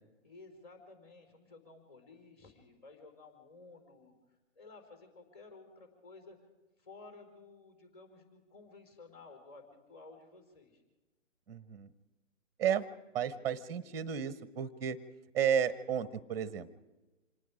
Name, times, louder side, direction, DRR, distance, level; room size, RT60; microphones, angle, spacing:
voice 1, 0.2-4.1 4.5-6.4 6.8-10.8 13.2-13.6, left 3 dB, 30° left, 6 dB, 4.9 m, -55 dB
voice 2, 11.5-11.9 12.6-12.8 13.1-15.0 15.3-16.7, right 8 dB, 10° right, 14 dB, 0.7 m, -32 dB
26.5 x 19.0 x 5.1 m, 1.1 s
figure-of-eight pair, 135°, 39 cm